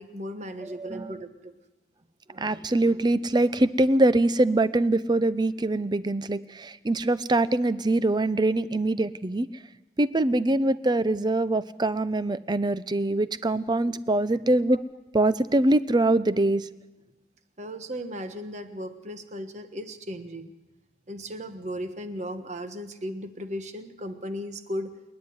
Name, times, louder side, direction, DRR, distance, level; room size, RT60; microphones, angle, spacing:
voice 1, 0.0-1.5 14.7-14.8 17.6-20.5 21.1-24.9, equal, 40° right, 8 dB, 1.4 m, -36 dB
voice 2, 0.6-1.1 2.3-9.5 10.0-14.8 15.1-16.7, right 2 dB, 25° right, 15 dB, 0.6 m, -23 dB
28.5 x 9.7 x 9.4 m, 1.1 s
head